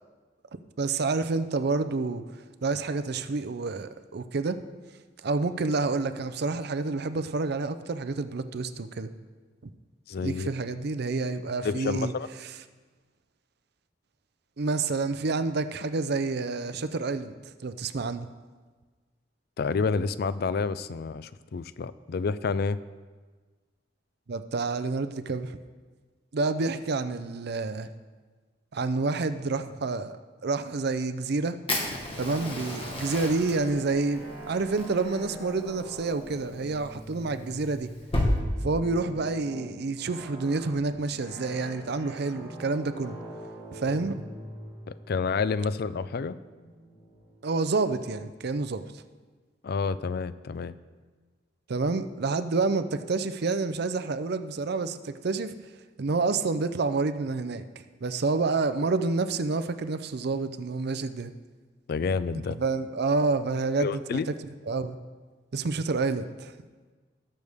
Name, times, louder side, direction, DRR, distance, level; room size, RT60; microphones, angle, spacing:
voice 1, 0.8-2.2 2.6-4.6 5.2-9.1 10.2-12.1 12.4-12.5 14.6-17.3 17.6-18.3 24.3-25.6 26.3-27.9 28.7-31.6 32.2-37.9 38.6-43.2 43.7-44.2 47.4-48.8 51.7-55.5 56.0-57.6 58.0-61.3 62.3-65.0 65.5-66.5, right 3 dB, 60° right, 11 dB, 0.6 m, -28 dB
voice 2, 10.1-10.5 11.6-12.3 19.6-22.8 44.9-46.4 49.6-50.7 61.9-62.6 63.8-64.3, left 5 dB, 55° left, 15 dB, 0.4 m, -29 dB
Fire, 31.7-38.3, left 1 dB, 30° left, 1.6 m, -34 dB
sound 1, 32.1-48.6, right 1 dB, 85° left, 3.8 m, -45 dB
19.0 x 6.6 x 3.6 m, 1.4 s
head